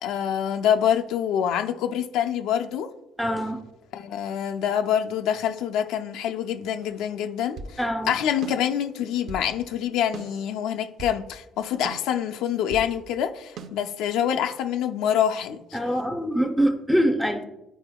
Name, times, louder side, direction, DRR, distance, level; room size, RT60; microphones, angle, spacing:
voice 1, 0.0-2.9 3.9-7.8 8.1-15.8, left 9 dB, 90° left, 0.4 m, -26 dB
voice 2, 3.2-3.6 7.8-8.1 15.7-17.4, equal, ahead, 0.5 m, -24 dB
sound 1, 6.8-7.8 8.4-9.5 10.1-11.2 11.8-12.9 13.6-13.7, right 3 dB, 65° right, 0.6 m, -40 dB
9.6 x 4.9 x 2.2 m
cardioid pair, 150°, 0 cm